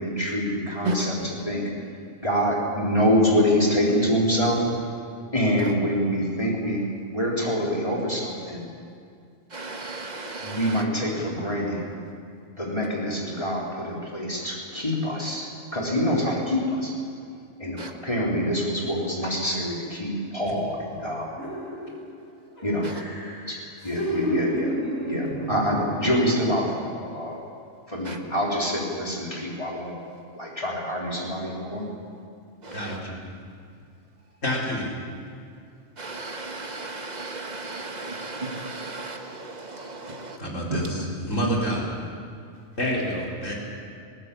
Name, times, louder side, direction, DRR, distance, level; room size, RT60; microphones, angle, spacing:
voice 1, 0.0-1.7 2.2-4.6 5.3-6.8 7.1-8.6 10.4-11.8 12.5-16.9 17.6-21.3 22.6-22.9 23.5-23.6 23.8-24.7 25.1-27.4 27.9-29.9 30.3-31.9, equal, 25° left, -3 dB, 3.9 m, -26 dB
voice 2, 9.5-10.8 17.8-17.9 22.8-22.9 26.4-26.5 28.0-28.2 32.6-33.0 36.0-40.4 40.7-41.0, right 2 dB, 30° right, 4 dB, 1.7 m, -34 dB
sound 1, 21.4-22.2 22.6-26.7 27.1-27.3, equal, 85° left, 6.5 m, -31 dB
voice 3, 32.7-33.2 34.4-34.9 40.4-41.8 42.8-43.5, equal, 65° left, -3 dB, 4.6 m, -28 dB
20.5 x 18.0 x 8.4 m, 2.4 s
omnidirectional pair, 1.4 m